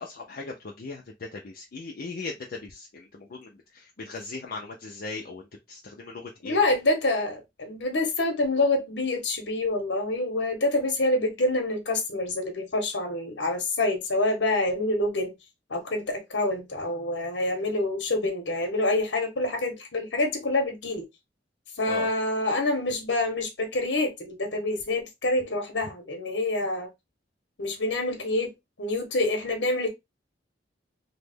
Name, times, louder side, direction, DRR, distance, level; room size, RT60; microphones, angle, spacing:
voice 1, 0.0-6.6 21.8-22.1, left 3 dB, 55° left, 0.5 m, -38 dB
voice 2, 6.4-15.3 15.7-21.0 21.8-26.9 27.6-29.9, left 2 dB, 75° left, 1.0 m, -27 dB
3.0 x 2.1 x 3.4 m
head